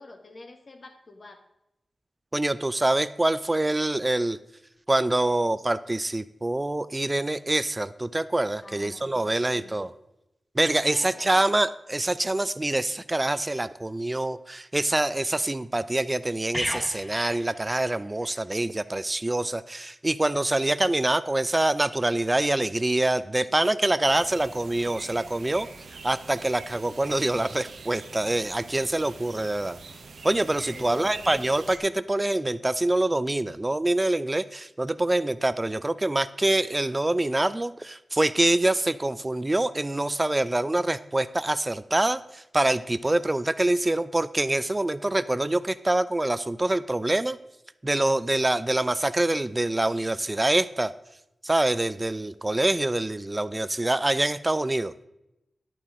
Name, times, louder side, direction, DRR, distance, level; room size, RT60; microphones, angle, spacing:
voice 1, 0.0-1.4 8.6-9.9 10.9-11.5 30.7-31.5, left 2 dB, 55° left, 5 dB, 1.4 m, -46 dB
voice 2, 2.3-4.4 4.9-9.9 10.5-25.7 26.0-29.8 30.2-47.4 47.8-50.9 51.4-54.9, right 2 dB, 25° right, 15 dB, 0.5 m, -25 dB
sound 1, 16.5-18.4 18.7-18.9, equal, 15° left, 1.8 m, -35 dB
sound 2, 24.0-31.8, right 4 dB, 85° right, 0.9 m, -44 dB
11.0 x 9.1 x 3.7 m, 0.86 s
cardioid pair, 60°, 0 cm